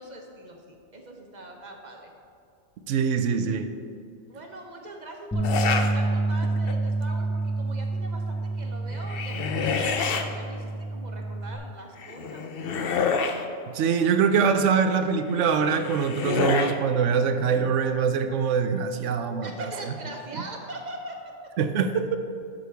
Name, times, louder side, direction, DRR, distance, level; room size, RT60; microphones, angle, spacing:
voice 1, 0.0-2.1 4.3-13.0 19.4-21.3, right 1 dB, 40° right, 1 dB, 1.1 m, -41 dB
voice 2, 2.9-3.7 13.7-19.5 21.6-22.2, right 6 dB, 90° right, 9 dB, 0.9 m, -23 dB
sound 1, 5.3-11.6, right 2 dB, 10° left, 0.6 m, -28 dB
sound 2, 5.4-5.9 6.4-6.9 8.9-10.2 12.0-13.4 15.4-16.7, left 5 dB, 60° left, 0.8 m, -28 dB
12.5 x 6.4 x 3.4 m, 2.4 s
omnidirectional pair, 1.2 m